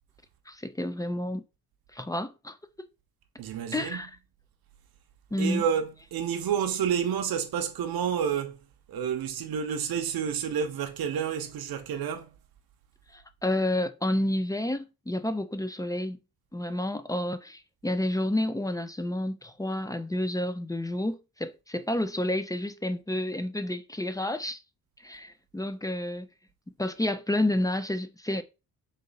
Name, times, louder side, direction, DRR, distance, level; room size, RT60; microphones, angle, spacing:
voice 1, 0.5-1.4 1.9-2.6 3.7-4.1 5.3-5.6 13.1-16.2 16.5-24.6 25.0-26.3 26.8-28.4, left 1 dB, 10° left, 0.4 m, -30 dB
voice 2, 3.4-4.0 5.4-8.6 8.9-12.3, right 8 dB, 70° right, 0.8 m, -29 dB
3.8 x 3.2 x 3.9 m
wide cardioid pair, 125°, 38 cm